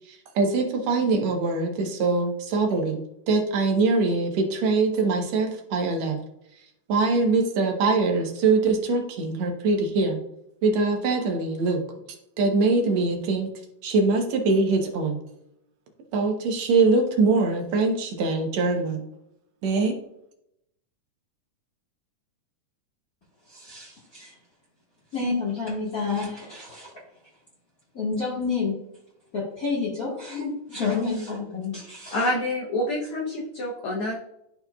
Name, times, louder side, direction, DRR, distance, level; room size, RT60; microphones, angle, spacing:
voice 1, 0.1-3.0 3.3-6.2 6.9-10.2 10.6-11.8 12.4-13.5 13.8-15.2 16.1-19.0 19.6-20.0, right 3 dB, 65° right, 2 dB, 2.1 m, -23 dB
voice 2, 23.5-24.3 25.1-26.9 27.9-28.8 29.3-32.3, left 4 dB, 40° left, -5 dB, 1.4 m, -29 dB
voice 3, 32.1-34.2, left 1 dB, 70° left, -2 dB, 1.3 m, -27 dB
12.0 x 4.3 x 2.3 m, 0.80 s
omnidirectional pair, 3.6 m